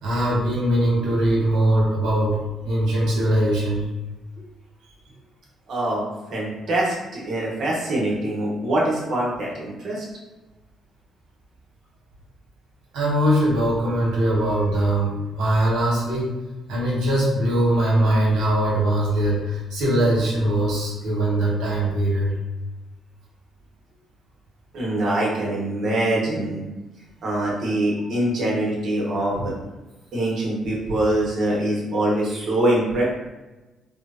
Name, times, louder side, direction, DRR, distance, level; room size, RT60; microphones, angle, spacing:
voice 1, 0.0-2.4 2.6-3.9 6.7-6.8 12.9-16.3 16.7-22.3, right 1 dB, 90° right, -5 dB, 1.0 m, -21 dB
voice 2, 5.7-6.0 6.3-10.0 24.7-26.6 27.2-29.5 30.1-33.0, right 1 dB, 65° right, -4 dB, 0.9 m, -24 dB
3.0 x 2.0 x 2.4 m, 1.1 s
cardioid pair, 90°, 0 cm